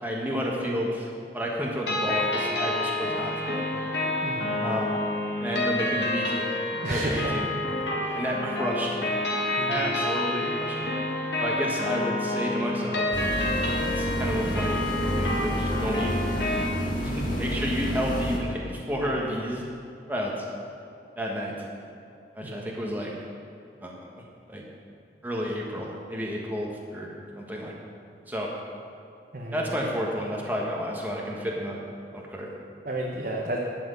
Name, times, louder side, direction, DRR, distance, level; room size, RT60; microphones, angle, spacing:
voice 1, 0.0-1.1 1.3-3.9 4.6-5.0 5.4-6.5 6.9-7.5 8.1-9.1 9.7-10.9 11.4-13.2 14.0-14.9 15.2-16.2 17.0-19.6 20.1-20.4 21.2-21.5 22.3-23.1 23.8-24.1 24.5-24.6 25.2-27.7 28.3-28.5 29.5-31.8 32.1-32.5, equal, 10° right, -2 dB, 1.3 m, -31 dB
sound 1, 1.9-16.6, left 2 dB, 80° left, 1.9 m, -29 dB
voice 2, 4.2-4.6 6.8-7.3 8.0-8.1 9.6-9.7 22.4-22.7 29.3-29.5 32.9-33.6, right 1 dB, 50° right, -2 dB, 1.1 m, -31 dB
sound 2, 13.1-18.4, equal, 50° left, 2.0 m, -29 dB
11.5 x 6.1 x 8.2 m, 2.6 s
head